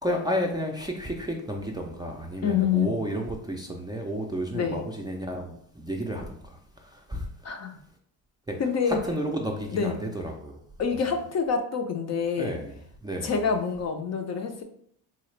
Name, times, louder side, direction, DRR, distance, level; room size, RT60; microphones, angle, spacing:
voice 1, 0.0-7.3 8.5-8.6 8.9-10.6 12.4-12.7 13.0-13.5, equal, 10° right, -1 dB, 0.4 m, -32 dB
voice 2, 2.4-3.0 4.5-4.8 7.4-7.8 8.6-9.0 9.7-10.0 10.8-12.5 13.2-14.6, left 6 dB, 40° left, 5 dB, 0.6 m, -27 dB
3.8 x 2.4 x 3.2 m, 0.65 s
cardioid pair, 85°, 41 cm